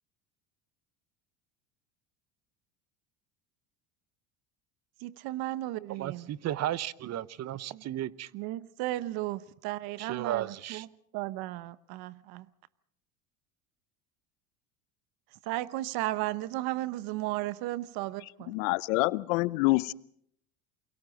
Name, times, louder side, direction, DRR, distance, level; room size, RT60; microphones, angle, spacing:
voice 1, 5.0-6.3 7.7-7.8 8.3-10.9 11.1-12.5 15.5-18.5, right 16 dB, 65° right, 1.0 m, -34 dB
voice 2, 5.9-8.3 10.0-10.9, right 12 dB, 40° right, 0.8 m, -34 dB
voice 3, 18.5-19.9, left 22 dB, 80° left, 0.7 m, -26 dB
28.5 x 23.0 x 4.0 m
supercardioid pair, 100°, 40 cm